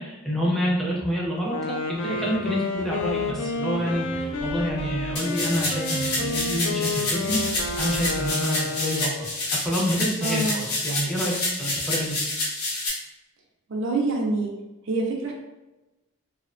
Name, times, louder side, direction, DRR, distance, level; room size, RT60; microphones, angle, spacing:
voice 1, 0.0-1.5 1.9-9.1 9.6-11.3 11.6-12.2, equal, ahead, -5 dB, 0.5 m, -28 dB
Wind instrument woodwind instrument, 1.5-9.4, left 3 dB, 60° left, 0.3 m, -30 dB
sound 1, 1.9-8.3, equal, 80° right, 0.8 m, -40 dB
sound 2, 5.2-12.9, left 2 dB, 85° left, 0.7 m, -28 dB
voice 2, 10.2-10.6 13.7-14.5 14.9-15.3, right 2 dB, 60° right, -1 dB, 0.4 m, -25 dB
2.6 x 2.1 x 2.5 m, 1.0 s
head